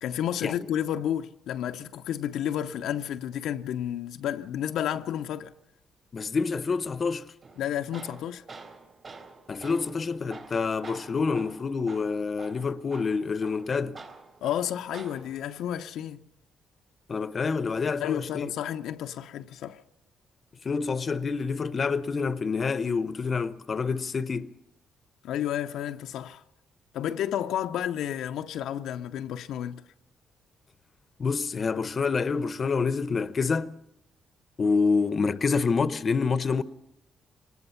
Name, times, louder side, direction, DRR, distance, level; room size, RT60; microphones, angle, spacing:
voice 1, 0.0-5.5 7.6-8.4 14.4-16.3 18.0-19.8 25.2-26.4 26.9-29.8, left 10 dB, 85° left, 0.6 m, -31 dB
voice 2, 6.1-7.3 9.5-14.0 17.1-18.5 20.6-24.5 31.2-33.8 34.6-36.6, left 5 dB, 40° left, 0.7 m, -27 dB
Tools, 7.4-15.4, right 3 dB, 45° right, 4.0 m, -47 dB
24.5 x 19.5 x 5.7 m
cardioid pair, 90°, 0 cm